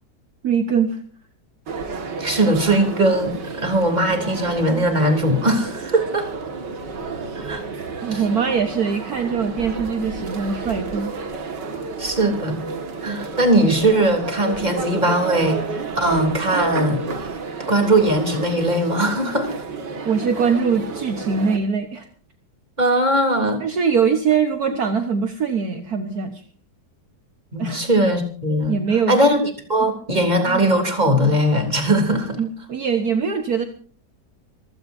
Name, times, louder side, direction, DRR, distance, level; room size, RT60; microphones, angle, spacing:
voice 1, 0.4-1.0 8.0-11.1 20.1-22.1 23.6-26.4 27.6-27.8 28.7-29.2 29.8-29.9 30.5-30.6 32.4-33.7, right 6 dB, 60° right, 6 dB, 1.7 m, -22 dB
sound 1, 1.7-21.6, right 4 dB, 80° right, 2.6 m, -31 dB
voice 2, 2.2-6.3 7.3-7.6 8.1-8.2 12.0-12.6 13.0-17.0 17.7-19.5 22.8-23.6 27.5-28.8 29.1-29.4 29.7-32.4, right 1 dB, 25° right, 4 dB, 3.4 m, -19 dB
25.5 x 16.0 x 2.7 m, 0.43 s
omnidirectional pair, 1.9 m